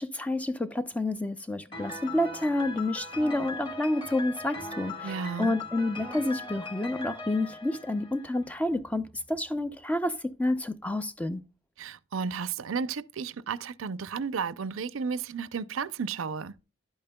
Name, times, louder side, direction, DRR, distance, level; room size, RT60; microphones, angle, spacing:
voice 1, 0.0-11.4, left 1 dB, 5° left, 0.4 m, -29 dB
Piano, 1.7-8.5, left 2 dB, 25° left, 2.1 m, -40 dB
voice 2, 5.0-5.5 11.8-16.5, right 5 dB, 70° right, 0.5 m, -33 dB
11.0 x 8.8 x 2.2 m
head